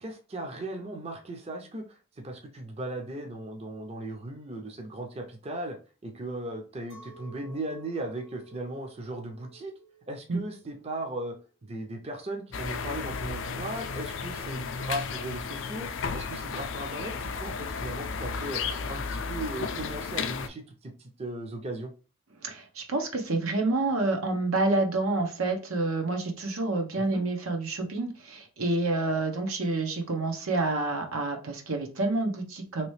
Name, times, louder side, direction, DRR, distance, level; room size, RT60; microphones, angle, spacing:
voice 1, 0.0-5.8 6.0-9.7 10.1-11.4 11.6-18.6 18.9-21.9 26.9-27.2, right 1 dB, 30° right, 3 dB, 0.5 m, -37 dB
Chink clink, 6.9-12.3, right 4 dB, 70° right, 1.6 m, -54 dB
sound 1, 12.5-20.5, left 5 dB, 65° left, 0.4 m, -34 dB
voice 2, 22.4-32.9, right 2 dB, 90° right, 3 dB, 0.9 m, -28 dB
3.1 x 3.0 x 3.1 m, 0.37 s
head